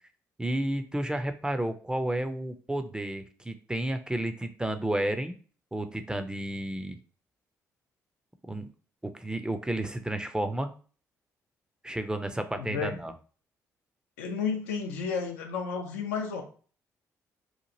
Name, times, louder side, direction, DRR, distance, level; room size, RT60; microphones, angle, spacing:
voice 1, 0.4-5.3 5.7-7.0 8.5-8.7 9.0-10.7 11.8-13.1, right 1 dB, 10° right, 8 dB, 0.5 m, -31 dB
voice 2, 12.6-12.9 14.2-16.4, left 6 dB, 85° left, 3 dB, 0.5 m, -32 dB
2.9 x 2.4 x 2.7 m, 0.40 s
hypercardioid pair, 45°, 8 cm